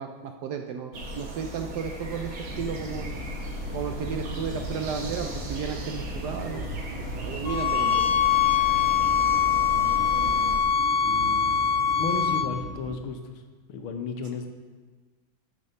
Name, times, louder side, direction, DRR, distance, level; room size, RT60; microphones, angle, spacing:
voice 1, 0.0-3.2 3.7-8.2, right 6 dB, 70° right, 5 dB, 1.0 m, -34 dB
sound 1, 0.9-10.6, right 1 dB, 90° right, 2.3 m, -36 dB
sound 2, 2.4-13.0, left 1 dB, 40° left, 2.6 m, -39 dB
sound 3, 7.5-12.5, left 8 dB, 65° left, 1.1 m, -23 dB
voice 2, 11.0-11.5 12.0-13.4 13.7-14.5, left 4 dB, 90° left, 6 dB, 1.7 m, -33 dB
9.5 x 5.4 x 6.6 m, 1.4 s
omnidirectional pair, 2.2 m